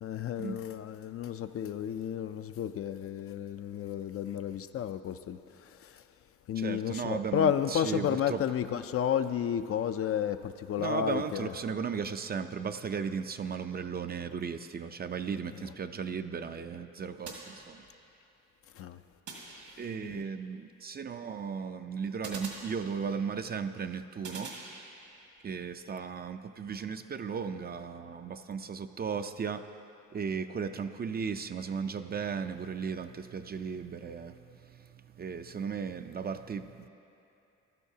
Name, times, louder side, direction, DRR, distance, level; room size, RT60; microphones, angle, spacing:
voice 1, 0.0-6.0 6.5-11.5 15.5-15.6 18.8-19.0 20.0-20.2, left 9 dB, 50° left, 10 dB, 0.4 m, -32 dB
voice 2, 6.6-8.4 10.8-17.8 19.8-24.5 25.4-29.7 30.1-36.9, right 6 dB, 35° right, 9 dB, 0.5 m, -36 dB
sound 1, 17.2-18.2 19.3-20.1 22.2-23.3 24.2-25.3, right 3 dB, 75° right, 2.1 m, -45 dB
15.0 x 12.5 x 2.8 m, 2.8 s
cardioid pair, 75°, 30 cm